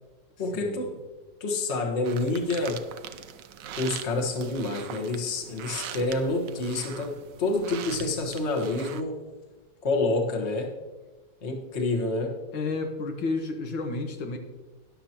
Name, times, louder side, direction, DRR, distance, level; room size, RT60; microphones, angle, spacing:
voice 1, 0.4-1.0 1.4-2.9 3.8-9.2 9.8-10.7 11.4-12.4, left 2 dB, 40° left, 2 dB, 1.5 m, -28 dB
sound 1, 2.1-9.0, right 9 dB, 70° right, 1.3 m, -41 dB
voice 2, 12.5-14.4, left 3 dB, 85° left, 3 dB, 2.1 m, -31 dB
13.0 x 10.5 x 2.9 m, 1.2 s
omnidirectional pair, 2.1 m